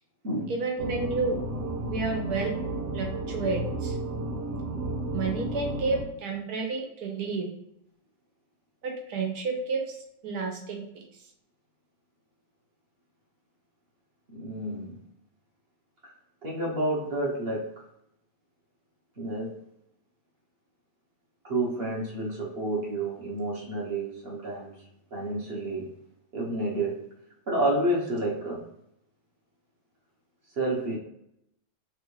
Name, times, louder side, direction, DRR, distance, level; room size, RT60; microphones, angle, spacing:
voice 1, 0.5-1.4 1.8-2.5 2.9-4.0 5.1-7.4 8.8-9.8 10.2-11.0, right 4 dB, 75° right, 1 dB, 1.2 m, -30 dB
sound 1, 0.8-6.0, right 2 dB, 90° right, 1.3 m, -32 dB
voice 2, 14.3-14.9 16.0-16.1 16.4-17.7 19.2-19.5 21.4-24.7 25.1-25.9 26.3-27.0 27.5-28.6 30.6-31.0, right 1 dB, 45° right, -4 dB, 1.0 m, -29 dB
3.4 x 2.4 x 3.1 m, 0.77 s
omnidirectional pair, 1.7 m